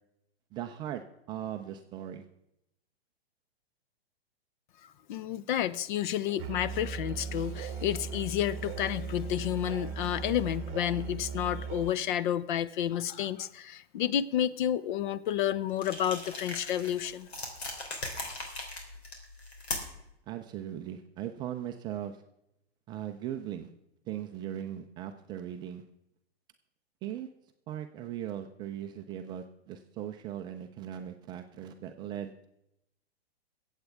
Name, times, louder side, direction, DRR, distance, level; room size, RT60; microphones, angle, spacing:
voice 1, 0.5-1.0 1.3-2.2 20.3-22.2 22.9-23.7 24.1-25.8 27.0-27.3 27.7-32.5, right 10 dB, 15° right, 0.3 m, -39 dB
voice 2, 4.8-17.3, left 11 dB, 50° left, 0.6 m, -30 dB
Musical instrument, 6.4-12.0, right 6 dB, 40° right, 0.9 m, -38 dB
sound 1, 15.8-20.1, left 2 dB, 80° left, 3.3 m, -39 dB
23.0 x 8.1 x 3.4 m
hypercardioid pair, 125°, 31 cm